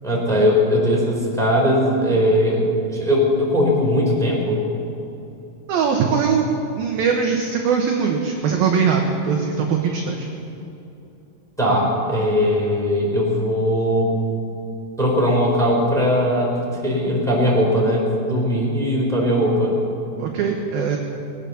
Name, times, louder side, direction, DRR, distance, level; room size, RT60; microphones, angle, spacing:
voice 1, 0.0-4.6 11.6-14.1 15.0-16.5 16.8-19.7, equal, ahead, -4 dB, 2.8 m, -19 dB
voice 2, 5.7-6.5 6.8-10.3 20.2-21.0, right 6 dB, 70° right, 1 dB, 2.3 m, -21 dB
20.5 x 9.8 x 6.9 m, 2.8 s
omnidirectional pair, 5.4 m